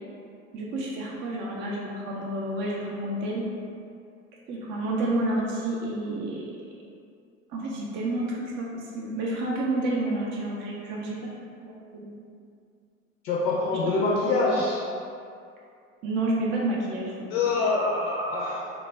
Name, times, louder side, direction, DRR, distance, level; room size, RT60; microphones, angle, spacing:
voice 1, 0.5-3.5 4.5-6.5 7.5-11.2 11.6-12.2 16.0-17.5, right 1 dB, 30° right, -4 dB, 0.4 m, -30 dB
voice 2, 13.2-14.9 17.3-18.7, left 3 dB, 60° left, -4 dB, 0.5 m, -25 dB
2.2 x 2.1 x 3.2 m, 2.4 s
figure-of-eight pair, 70°, 40 cm